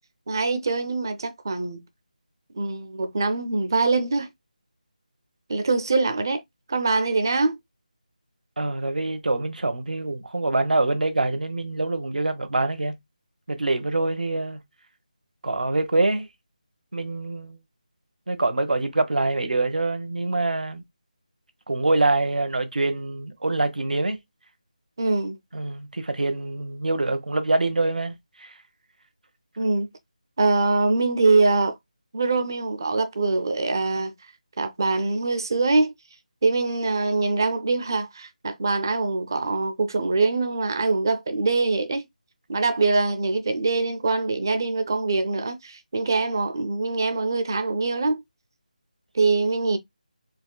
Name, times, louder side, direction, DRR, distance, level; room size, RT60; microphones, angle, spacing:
voice 1, 0.3-1.8 2.5-4.3 5.5-6.4 6.7-7.6 25.0-25.4 29.6-29.9 30.4-31.8 32.1-34.1 34.6-35.9 36.4-42.1 42.5-48.2 49.1-49.8, right 3 dB, 30° right, 0.5 m, -23 dB
voice 2, 8.6-12.9 13.5-14.6 15.4-16.3 16.9-17.6 18.3-20.8 21.7-24.2 25.5-28.5, right 2 dB, 80° right, 1.1 m, -25 dB
4.1 x 3.0 x 2.3 m
figure-of-eight pair, 175°, 4 cm